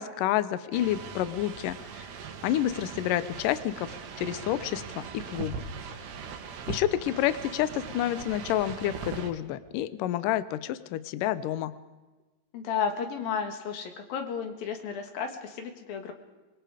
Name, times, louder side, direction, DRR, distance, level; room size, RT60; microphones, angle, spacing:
voice 1, 0.0-2.1 2.4-5.6 6.7-11.7, left 12 dB, 90° left, 15 dB, 1.9 m, -29 dB
sound 1, 0.7-9.3, right 6 dB, 70° right, 3.7 m, -40 dB
voice 2, 12.5-16.1, left 6 dB, 60° left, 6 dB, 3.4 m, -33 dB
25.5 x 22.0 x 5.0 m, 1.2 s
omnidirectional pair, 4.9 m